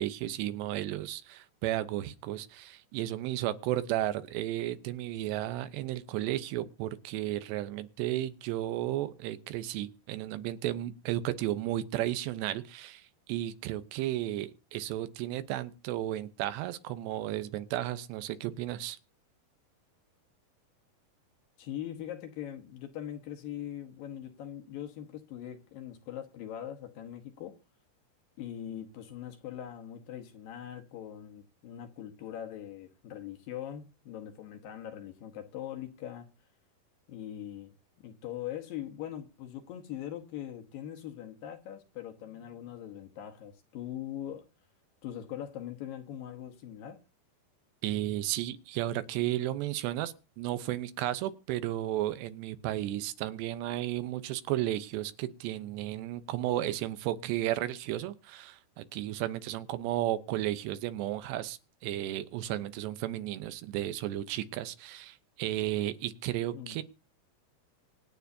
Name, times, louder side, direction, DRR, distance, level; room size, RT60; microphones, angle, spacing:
voice 1, 0.0-19.0 47.8-66.8, right 14 dB, 90° right, 3.1 m, -33 dB
voice 2, 21.6-27.6 28.4-36.3 37.1-37.7 38.0-44.5 45.0-47.0 66.5-66.8, left 11 dB, 65° left, 2.6 m, -41 dB
24.5 x 9.4 x 2.7 m
omnidirectional pair, 4.8 m